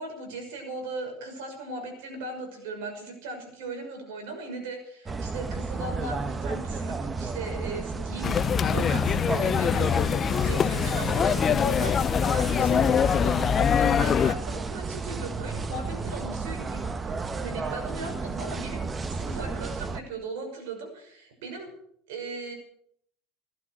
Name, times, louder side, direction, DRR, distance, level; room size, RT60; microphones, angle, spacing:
voice 1, 0.0-21.7 22.1-22.5, right 3 dB, 80° right, 5 dB, 5.9 m, -38 dB
sound 1, 5.1-20.0, right 4 dB, 20° right, 1.0 m, -33 dB
sound 2, 8.2-14.3, left 8 dB, 35° left, 0.5 m, -23 dB
16.5 x 12.5 x 6.2 m, 0.67 s
supercardioid pair, 110°, 0 cm